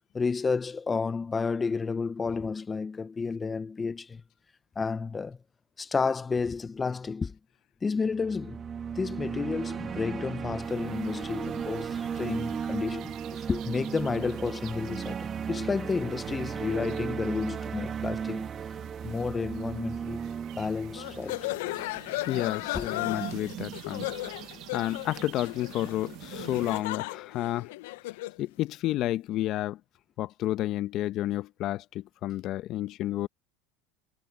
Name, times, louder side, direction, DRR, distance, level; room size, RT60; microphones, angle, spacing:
voice 1, 0.0-4.2 4.8-5.4 5.8-7.4 7.8-8.6 8.9-18.5 19.0-20.2 20.6-21.5 22.7-22.9, left 4 dB, 20° left, 0.8 m, -31 dB
sound 1, 8.1-22.3, right 7 dB, 30° right, 2.6 m, -36 dB
sound 2, 10.6-26.8, right 15 dB, 55° right, 1.5 m, -47 dB
sound 3, 21.0-28.4, left 20 dB, 75° left, 0.7 m, -36 dB
voice 2, 22.3-24.1 24.7-27.7 28.4-29.8 30.2-33.3, left 14 dB, 50° left, 1.0 m, -31 dB
hypercardioid pair, 95°, 0 cm